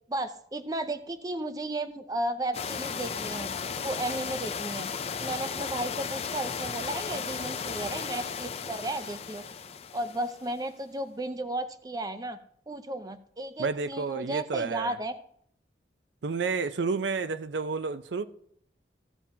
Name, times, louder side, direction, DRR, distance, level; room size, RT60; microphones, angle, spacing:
voice 1, 0.1-3.5 3.8-4.9 5.2-9.4 9.9-12.4 12.7-15.1, right 1 dB, 20° right, 0.5 m, -34 dB
sound 1, 2.5-10.5, left 6 dB, 35° left, 0.5 m, -35 dB
voice 2, 13.6-15.0 16.2-18.3, right 4 dB, 80° right, 0.5 m, -30 dB
14.5 x 7.0 x 2.8 m
head